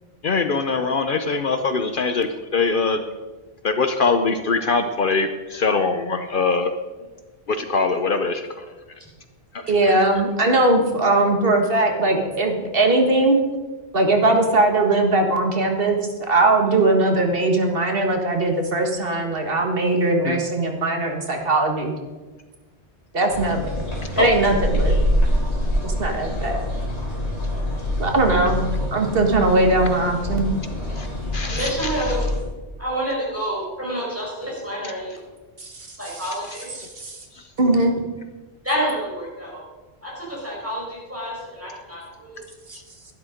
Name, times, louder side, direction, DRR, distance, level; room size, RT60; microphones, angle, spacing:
voice 1, 0.2-3.0 3.6-6.7 7.5-8.4 20.3-20.4 24.2-24.3 31.0-31.1 31.3-31.9, left 4 dB, 55° left, 8 dB, 0.8 m, -22 dB
voice 2, 9.7-13.4 13.9-16.0 16.3-21.9 23.1-23.8 24.2-24.9 25.8-26.6 28.0-30.5 35.6-35.9 36.8-37.2 37.6-37.9, right 2 dB, 55° right, 3 dB, 1.7 m, -20 dB
sound 1, 23.3-32.4, equal, 75° left, 3.7 m, -25 dB
voice 3, 31.4-32.2 32.8-35.1 35.9-36.7 38.6-39.6 40.0-42.4, equal, 10° right, -5 dB, 5.0 m, -28 dB
11.5 x 11.0 x 5.1 m, 1.3 s
omnidirectional pair, 1.1 m